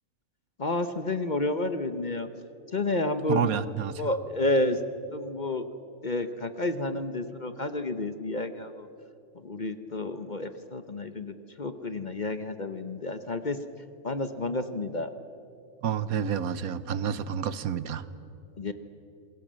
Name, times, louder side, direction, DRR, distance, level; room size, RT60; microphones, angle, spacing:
voice 1, 0.6-2.3 2.7-3.5 4.0-4.8 5.1-5.7 6.0-8.9 9.3-13.6 14.0-15.1 18.6-18.7, left 2 dB, 35° left, 10 dB, 1.0 m, -30 dB
voice 2, 3.3-4.0 15.8-18.1, right 8 dB, 80° right, 15 dB, 1.3 m, -29 dB
28.0 x 21.5 x 7.6 m, 2.7 s
omnidirectional pair, 1.5 m